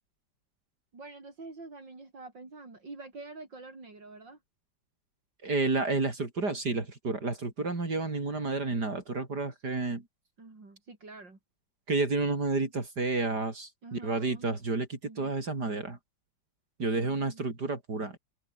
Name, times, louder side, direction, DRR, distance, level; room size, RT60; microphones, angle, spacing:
voice 1, 0.9-4.4 10.4-11.4 13.8-14.5 15.1-15.3, right 3 dB, 80° right, 5.8 m, -47 dB
voice 2, 5.4-10.0 11.9-16.0 16.8-18.2, right 3 dB, 60° right, 4.8 m, -30 dB
open air
omnidirectional pair, 2.0 m